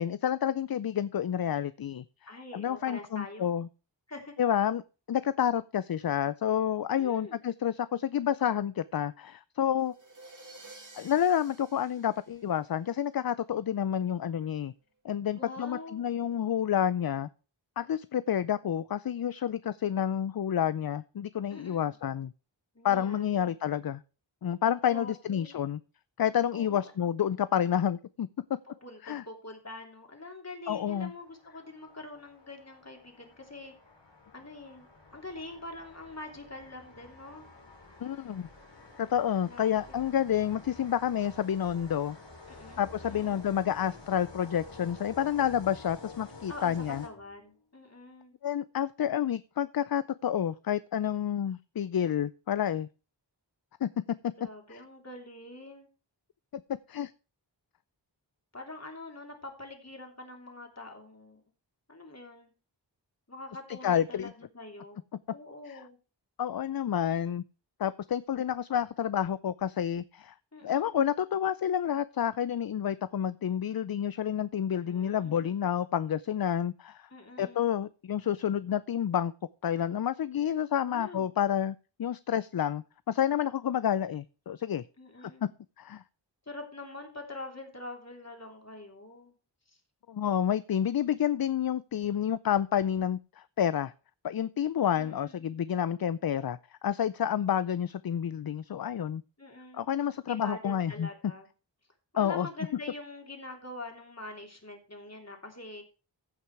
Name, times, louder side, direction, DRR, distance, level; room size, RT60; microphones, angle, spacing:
voice 1, 0.0-2.0 2.5-3.7 4.4-4.8 5.1-9.9 10.9-14.7 15.0-17.3 17.8-22.3 22.8-24.0 24.4-25.8 26.2-28.3 29.0-29.2 30.7-31.1 38.0-38.5 39.0-42.2 42.8-47.0 48.4-52.9 53.8-53.9 56.9-57.1 63.8-64.3 65.7-65.8 66.4-67.4 67.8-70.3 70.6-77.1 77.4-79.3 79.6-84.8 85.4-85.5 85.8-86.0 90.1-93.9 94.2-99.2 99.7-101.1 102.2-102.5, left 9 dB, 55° left, 0.5 m, -29 dB
voice 2, 2.3-3.5 4.1-4.3 6.9-7.4 15.4-16.0 21.5-21.9 22.7-23.5 24.9-25.6 26.5-26.9 28.8-33.7 34.0-37.4 39.5-40.1 42.5-43.4 46.5-46.7 47.0-48.4 54.4-55.9 58.5-61.4 61.9-62.5 63.3-65.0 65.3-66.0 70.5-70.9 74.8-75.5 77.1-77.7 80.8-81.3 85.0-85.5 86.4-89.3 89.7-89.8 94.8-95.4 99.4-99.9 100.2-101.5 102.1-105.8, left 2 dB, 35° left, 3.2 m, -45 dB
sound 1, 9.8-13.1, right 2 dB, 45° right, 2.1 m, -52 dB
sound 2, 30.8-47.6, left 3 dB, 75° left, 2.6 m, -50 dB
15.0 x 5.7 x 4.7 m
wide cardioid pair, 55°, 44 cm